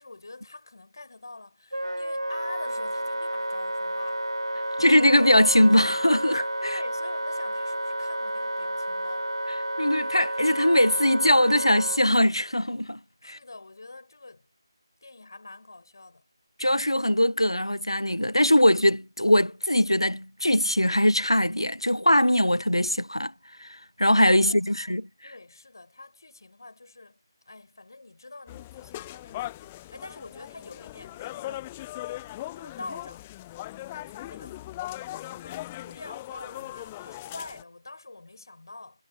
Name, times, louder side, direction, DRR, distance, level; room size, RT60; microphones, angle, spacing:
voice 1, 0.0-4.3 6.6-9.3 13.2-14.5 15.0-16.2 24.3-25.0 25.2-27.2 27.4-31.7 32.1-33.3 33.9-34.7 35.1-39.0, left 2 dB, 50° left, 6.5 m, -45 dB
Wind instrument woodwind instrument, 1.7-12.0, right 1 dB, 80° right, 0.8 m, -31 dB
voice 2, 4.8-6.5 9.8-13.0 13.3-13.4 16.6-23.3 23.6-23.7 24.0-25.0, left 1 dB, 85° left, 0.6 m, -21 dB
sound 1, 28.5-37.6, left 16 dB, 10° left, 0.6 m, -39 dB
figure-of-eight pair, 160°, 3 cm